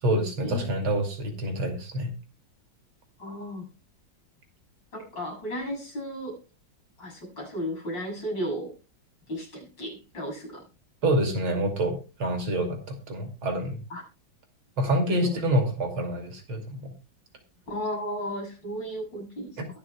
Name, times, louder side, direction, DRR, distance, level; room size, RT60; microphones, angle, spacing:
voice 1, 0.0-2.1 11.0-13.8 14.8-16.9 19.6-19.7, right 1 dB, 85° right, 5 dB, 3.5 m, -27 dB
voice 2, 3.2-3.7 4.9-6.4 7.0-8.7 9.3-10.6 13.9-14.0 15.1-15.4 17.7-19.6, equal, 60° left, -1 dB, 8.1 m, -34 dB
22.0 x 7.9 x 2.3 m, 0.30 s
omnidirectional pair, 2.2 m